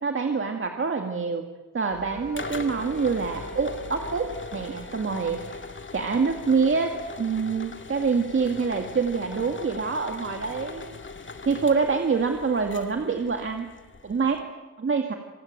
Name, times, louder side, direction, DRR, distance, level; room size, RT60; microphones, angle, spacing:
voice 1, 0.0-1.4 1.7-5.6 5.9-11.0 11.5-13.7 14.0-14.5 14.8-15.1, right 5 dB, 40° right, 4 dB, 2.0 m, -26 dB
sound 1, 1.9-14.4, left 4 dB, 40° left, 2.1 m, -40 dB
Wind instrument woodwind instrument, 2.0-6.9, right 1 dB, 85° right, 7.5 m, -43 dB
27.0 x 19.5 x 8.9 m, 1.2 s
wide cardioid pair, 125°, 31 cm